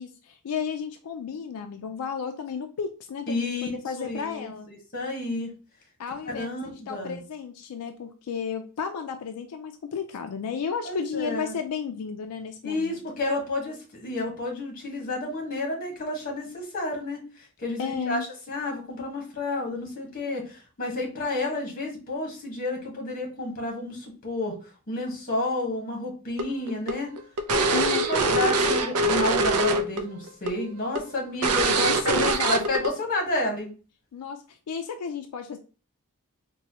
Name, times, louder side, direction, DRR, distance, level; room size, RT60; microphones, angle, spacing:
voice 1, 0.0-4.7 6.0-13.0 17.8-18.2 27.7-28.0 31.7-32.7 34.1-35.6, left 6 dB, 85° left, 6 dB, 0.4 m, -33 dB
voice 2, 3.3-3.7 4.0-5.5 6.2-7.2 10.8-11.5 12.6-18.2 18.5-24.5 24.9-27.1 27.5-33.7, left 2 dB, 40° left, 0 dB, 1.3 m, -31 dB
sound 1, 26.4-30.0 30.3-30.5 31.0-31.1 31.4-32.9, right 2 dB, 90° right, 0.5 m, -23 dB
4.1 x 2.2 x 2.8 m, 0.35 s
head